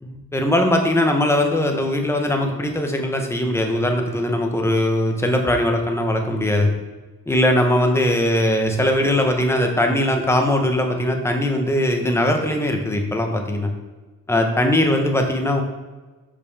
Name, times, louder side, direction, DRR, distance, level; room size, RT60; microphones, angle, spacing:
voice 1, 0.0-6.7 7.3-13.7 14.3-15.6, left 1 dB, 10° left, 3 dB, 0.7 m, -20 dB
6.7 x 5.4 x 3.3 m, 1.3 s
wide cardioid pair, 160°, 32 cm